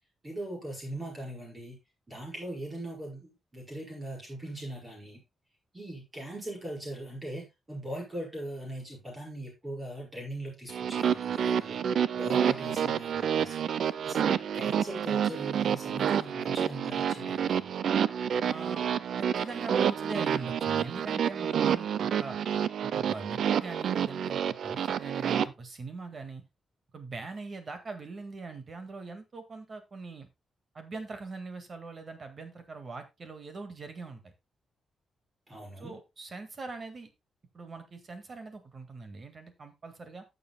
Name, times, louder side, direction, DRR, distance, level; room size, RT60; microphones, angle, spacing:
voice 1, 0.2-1.8 2.1-5.2 5.7-11.8 12.2-13.7 14.0-17.7 35.5-36.0, right 1 dB, 20° right, -2 dB, 5.2 m, -40 dB
sound 1, 10.7-25.5, right 8 dB, 65° right, 0.5 m, -29 dB
voice 2, 18.4-18.9 19.2-22.4 22.8-26.4 26.9-30.3 30.7-34.3 35.8-37.1 37.5-40.2, right 3 dB, 35° right, 7 dB, 1.8 m, -42 dB
15.0 x 7.0 x 2.2 m, 0.23 s
wide cardioid pair, 145°, 0 cm